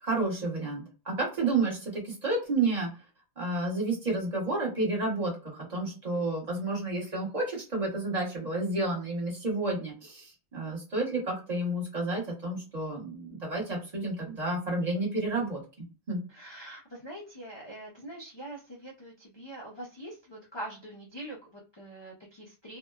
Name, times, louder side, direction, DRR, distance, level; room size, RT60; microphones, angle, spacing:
voice 1, 0.0-2.9 3.4-15.6 16.1-16.2, right 2 dB, 40° right, -3 dB, 1.0 m, -30 dB
voice 2, 16.3-22.8, right 1 dB, 40° left, -2 dB, 0.4 m, -43 dB
2.7 x 2.1 x 2.2 m, 0.34 s
omnidirectional pair, 1.2 m